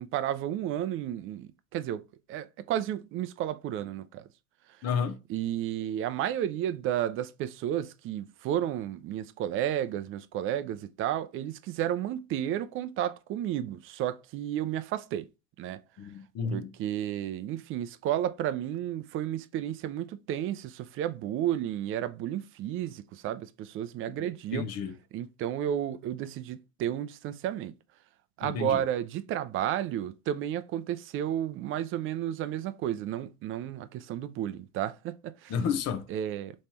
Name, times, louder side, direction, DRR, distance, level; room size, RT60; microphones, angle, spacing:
voice 1, 0.0-4.3 5.3-15.3 15.6-15.8 16.5-24.7 25.1-27.7 28.4-35.5 36.1-36.5, right 11 dB, 30° right, 0.4 m, -32 dB
voice 2, 4.8-5.2 16.0-16.7 24.5-24.9 28.4-28.8 35.5-36.0, left 6 dB, 40° left, 0.8 m, -31 dB
3.4 x 3.1 x 4.2 m
hypercardioid pair, 90°, 41 cm